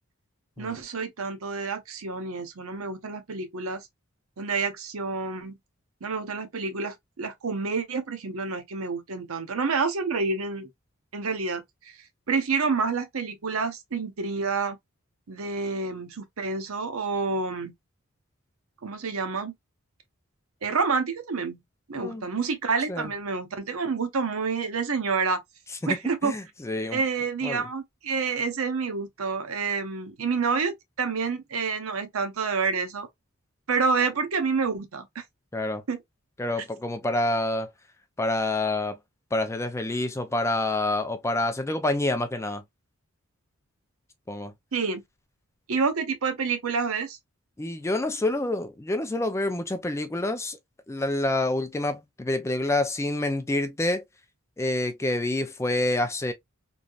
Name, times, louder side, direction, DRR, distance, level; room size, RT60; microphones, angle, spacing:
voice 1, 0.6-3.9 4.4-5.6 6.0-10.7 11.1-12.0 12.3-14.8 15.3-17.7 18.8-19.5 20.6-21.6 21.9-25.4 25.8-26.3 26.9-33.1 33.7-35.2 35.9-36.0 44.7-45.0 45.7-47.2, right 4 dB, 85° right, 0.7 m, -28 dB
voice 2, 26.2-27.0 27.4-27.6 35.5-35.8 36.4-37.7 38.2-39.0 39.3-42.6 44.3-44.5 47.6-50.6 50.9-54.0 54.6-56.3, left 2 dB, 15° left, 0.4 m, -27 dB
3.1 x 2.6 x 2.3 m
head